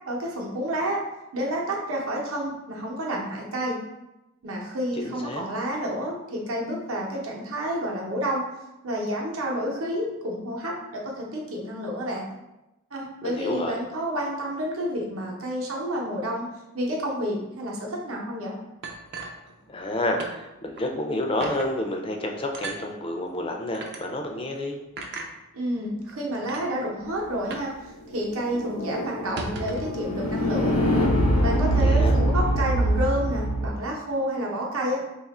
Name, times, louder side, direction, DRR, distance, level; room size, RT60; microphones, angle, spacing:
voice 1, 0.1-1.0 1.3-3.8 4.4-8.4 8.8-12.3 12.9-16.5 16.7-18.6 25.5-30.8 31.3-35.0, equal, 75° right, -2 dB, 0.8 m, -29 dB
voice 2, 4.9-5.4 13.2-13.8 19.7-24.8 31.8-32.2, left 1 dB, 25° left, 2 dB, 0.4 m, -29 dB
sound 1, 18.8-19.9 20.2-20.4 20.8-20.9 21.4-21.7 22.5-22.8 23.7-24.0 25.0-25.3 26.1-26.2 26.4-26.7 27.5-27.8 28.0-28.1 28.5-28.7 29.2-30.0, right 3 dB, 50° right, 0.4 m, -36 dB
sound 2, 28.1-33.7, right 1 dB, 85° left, 0.7 m, -24 dB
2.8 x 2.4 x 4.2 m, 0.96 s
head